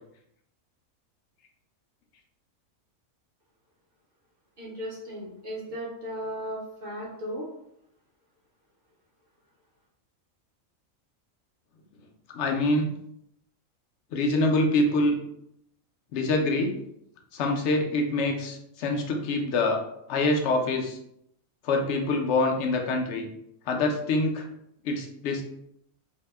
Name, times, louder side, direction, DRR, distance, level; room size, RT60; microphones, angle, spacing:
voice 1, 4.6-7.5, equal, 40° right, -4 dB, 0.8 m, -36 dB
voice 2, 12.3-12.9 14.1-15.2 16.1-16.8 17.3-19.8 20.1-21.0 21.6-23.3 23.7-24.5 24.8-25.4, left 2 dB, 65° left, 2 dB, 0.8 m, -25 dB
2.7 x 2.0 x 3.2 m, 0.76 s
omnidirectional pair, 1.4 m